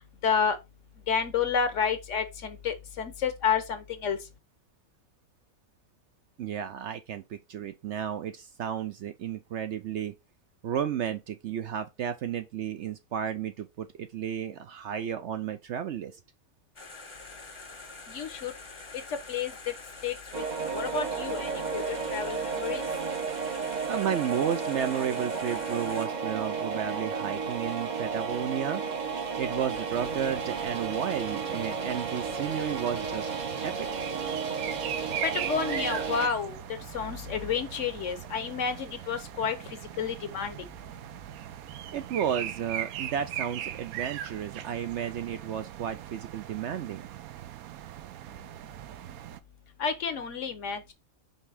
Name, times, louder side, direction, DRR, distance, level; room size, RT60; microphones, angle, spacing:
voice 1, 0.2-0.6 1.1-4.2 18.1-18.5 19.3-19.5 20.0-20.4 20.7-22.8 35.2-36.6 36.9-39.5 40.0-40.6 49.8-50.9, left 6 dB, 60° left, 1.2 m, -30 dB
voice 2, 6.4-10.1 10.6-16.1 23.9-28.8 29.4-33.3 33.6-33.9 41.9-47.1, right 9 dB, 65° right, 0.8 m, -32 dB
sound 1, 16.8-26.1, left 3 dB, 25° left, 0.8 m, -45 dB
sound 2, 20.3-36.3, right 5 dB, 40° right, 0.7 m, -33 dB
sound 3, 29.9-49.4, right 11 dB, 80° right, 1.1 m, -40 dB
5.4 x 3.5 x 4.9 m
omnidirectional pair, 1.5 m